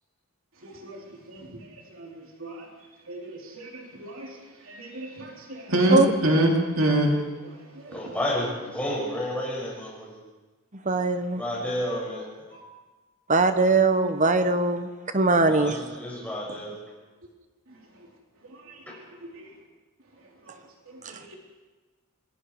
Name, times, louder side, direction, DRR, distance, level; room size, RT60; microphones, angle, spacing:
voice 1, 0.6-2.7 3.1-4.4 4.6-7.1 7.4-8.0 12.5-12.6 18.5-19.5 20.4-20.6 20.9-21.4, right 1 dB, 65° right, 0 dB, 3.6 m, -28 dB
voice 2, 7.9-10.2 11.3-12.3 15.4-16.8 18.9-19.0, left 1 dB, 5° left, -4 dB, 7.0 m, -31 dB
voice 3, 10.8-11.4 13.3-14.9 15.1-15.8, right 3 dB, 35° right, 9 dB, 1.3 m, -21 dB
27.5 x 22.0 x 4.9 m, 1.3 s
head